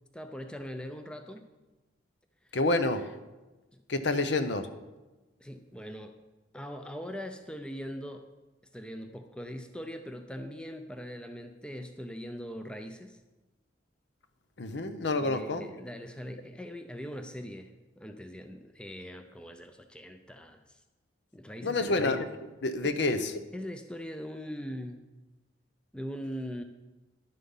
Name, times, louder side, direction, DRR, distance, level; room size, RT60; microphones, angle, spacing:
voice 1, 0.1-1.5 2.4-2.6 3.7-3.8 5.4-6.1 6.5-8.3 8.7-13.2 15.2-20.8 21.3-22.1 22.8-23.0 23.5-25.0 25.9-26.6, equal, 5° left, 6 dB, 0.5 m, -41 dB
voice 2, 2.5-3.1 3.9-4.7 14.6-15.6 21.6-22.3 22.6-23.3, left 2 dB, 65° left, 10 dB, 0.7 m, -28 dB
10.5 x 7.6 x 5.5 m, 1.1 s
head